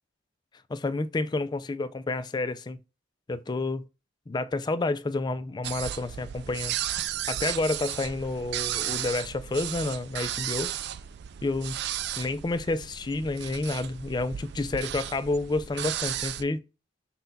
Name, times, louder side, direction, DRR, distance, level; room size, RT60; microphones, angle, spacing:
voice 1, 0.7-2.8 3.3-3.8 4.3-6.8 7.3-10.7 11.4-11.8 12.2-16.6, left 2 dB, 20° left, 0.3 m, -29 dB
sound 1, 5.6-16.4, right 11 dB, 60° right, 0.3 m, -34 dB
5.7 x 2.2 x 4.0 m
head